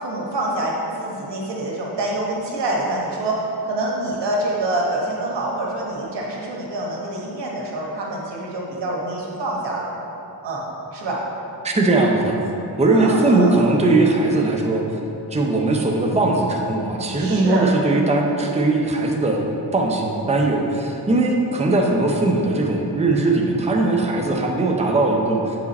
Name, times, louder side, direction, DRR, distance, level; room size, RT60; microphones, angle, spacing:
voice 1, 0.0-9.9 10.4-10.6 10.9-11.2 12.9-13.5 17.2-17.7, right 2 dB, 85° right, -3 dB, 1.3 m, -26 dB
voice 2, 11.6-12.4 12.8-14.8 15.3-19.4 19.7-25.5, right 2 dB, 15° right, 0 dB, 0.7 m, -19 dB
7.7 x 4.9 x 4.2 m, 3.0 s
cardioid pair, 90°, 41 cm